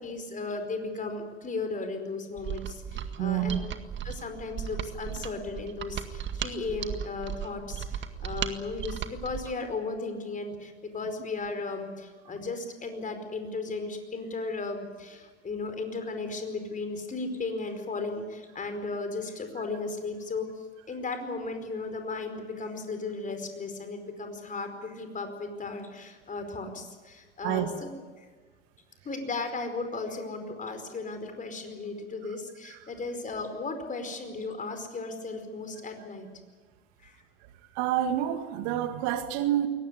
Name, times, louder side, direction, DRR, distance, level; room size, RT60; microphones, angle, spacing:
voice 1, 0.0-3.6 4.0-20.5 20.9-27.9 28.2-28.3 29.0-36.3 37.0-37.2, left 3 dB, 25° left, 7 dB, 4.9 m, -35 dB
Mechanisms, 2.4-9.6, right 9 dB, 35° right, 1.9 m, -36 dB
voice 2, 3.2-3.6 27.4-27.7 32.6-32.8 37.7-39.7, right 11 dB, 50° right, 8 dB, 2.0 m, -28 dB
22.0 x 18.5 x 9.6 m, 1.4 s
figure-of-eight pair, 80°, 34 cm